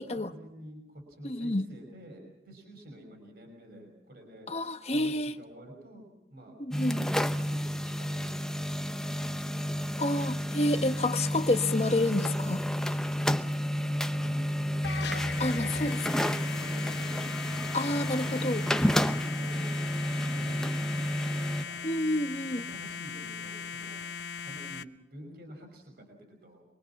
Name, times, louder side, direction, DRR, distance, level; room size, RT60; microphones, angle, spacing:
voice 1, 0.0-4.5 4.9-6.0 6.3-6.6 7.5-10.0 13.8-17.9 18.6-18.8 19.2-21.8 22.3-24.0 24.4-26.6, equal, 60° right, 3 dB, 5.7 m, -48 dB
voice 2, 1.2-1.6 4.5-5.3 6.8-7.0 10.0-12.6 15.4-16.0 17.7-18.6 21.8-22.6, left 1 dB, 35° left, 8 dB, 1.2 m, -29 dB
sound 1, 6.7-21.6, equal, 5° left, 0.8 m, -30 dB
sound 2, 14.8-24.8, left 6 dB, 80° left, 0.9 m, -39 dB
27.0 x 23.0 x 6.0 m, 0.88 s
head